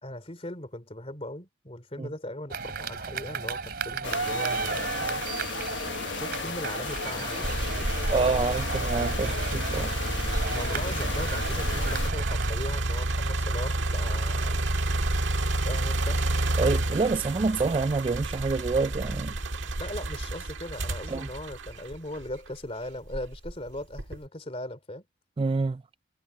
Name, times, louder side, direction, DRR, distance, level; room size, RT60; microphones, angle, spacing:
voice 1, 0.0-5.2 6.2-7.9 10.5-14.8 15.6-16.2 19.8-25.1, left 1 dB, 30° left, 3.0 m, -39 dB
sound 1, 2.5-12.5, right 5 dB, 55° right, 3.0 m, -34 dB
sound 2, 4.0-12.1, left 5 dB, 70° left, 1.2 m, -35 dB
sound 3, 7.4-22.5 23.1-24.3, right 2 dB, 80° right, 1.7 m, -29 dB
voice 2, 8.1-9.9 16.6-19.3 21.1-21.3 25.4-25.8, right 4 dB, 30° right, 0.3 m, -27 dB
head